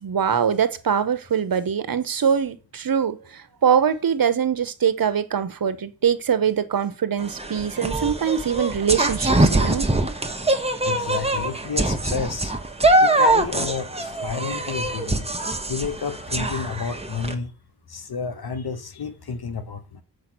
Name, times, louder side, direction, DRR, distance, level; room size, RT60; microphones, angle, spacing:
voice 1, 0.0-9.9, right 8 dB, 65° right, 0.8 m, -23 dB
sound 1, 7.2-17.3, right 2 dB, 15° right, 0.9 m, -23 dB
voice 2, 10.8-12.5 13.0-15.3 15.7-17.5 17.9-20.0, left 5 dB, 80° left, 1.0 m, -30 dB
6.3 x 4.8 x 6.1 m
cardioid pair, 50°, 37 cm